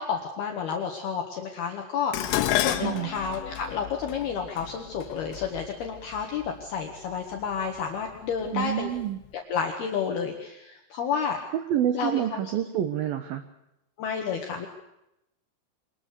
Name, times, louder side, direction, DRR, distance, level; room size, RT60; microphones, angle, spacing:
voice 1, 0.0-8.9 9.5-11.4 11.9-12.2 14.0-14.7, left 6 dB, 60° left, 2 dB, 3.2 m, -30 dB
Dishes pots and pans, 2.1-6.5 7.4-7.8 8.2-9.0 9.3-9.4, left 13 dB, 85° left, 3.8 m, -31 dB
voice 2, 8.5-9.2 11.7-13.4, right 11 dB, 80° right, 10 dB, 2.1 m, -27 dB
25.0 x 21.0 x 6.8 m, 0.86 s
omnidirectional pair, 5.9 m